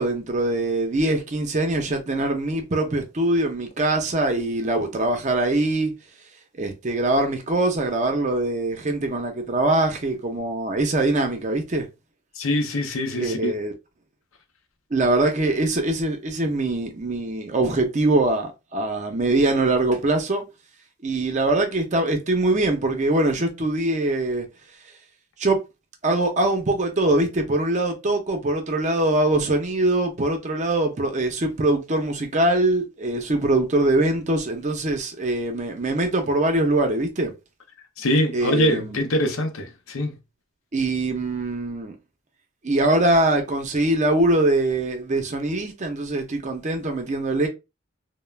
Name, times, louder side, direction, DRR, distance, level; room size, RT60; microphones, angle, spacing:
voice 1, 0.0-5.9 6.6-11.9 13.1-13.7 14.9-20.4 21.0-24.5 25.4-25.6 26.0-37.3 38.3-39.0 40.7-42.0 42.6-47.5, right 2 dB, 35° right, 0.5 m, -23 dB
voice 2, 12.4-13.6 38.0-40.1, left 1 dB, 75° left, 0.6 m, -24 dB
2.3 x 2.1 x 3.1 m
head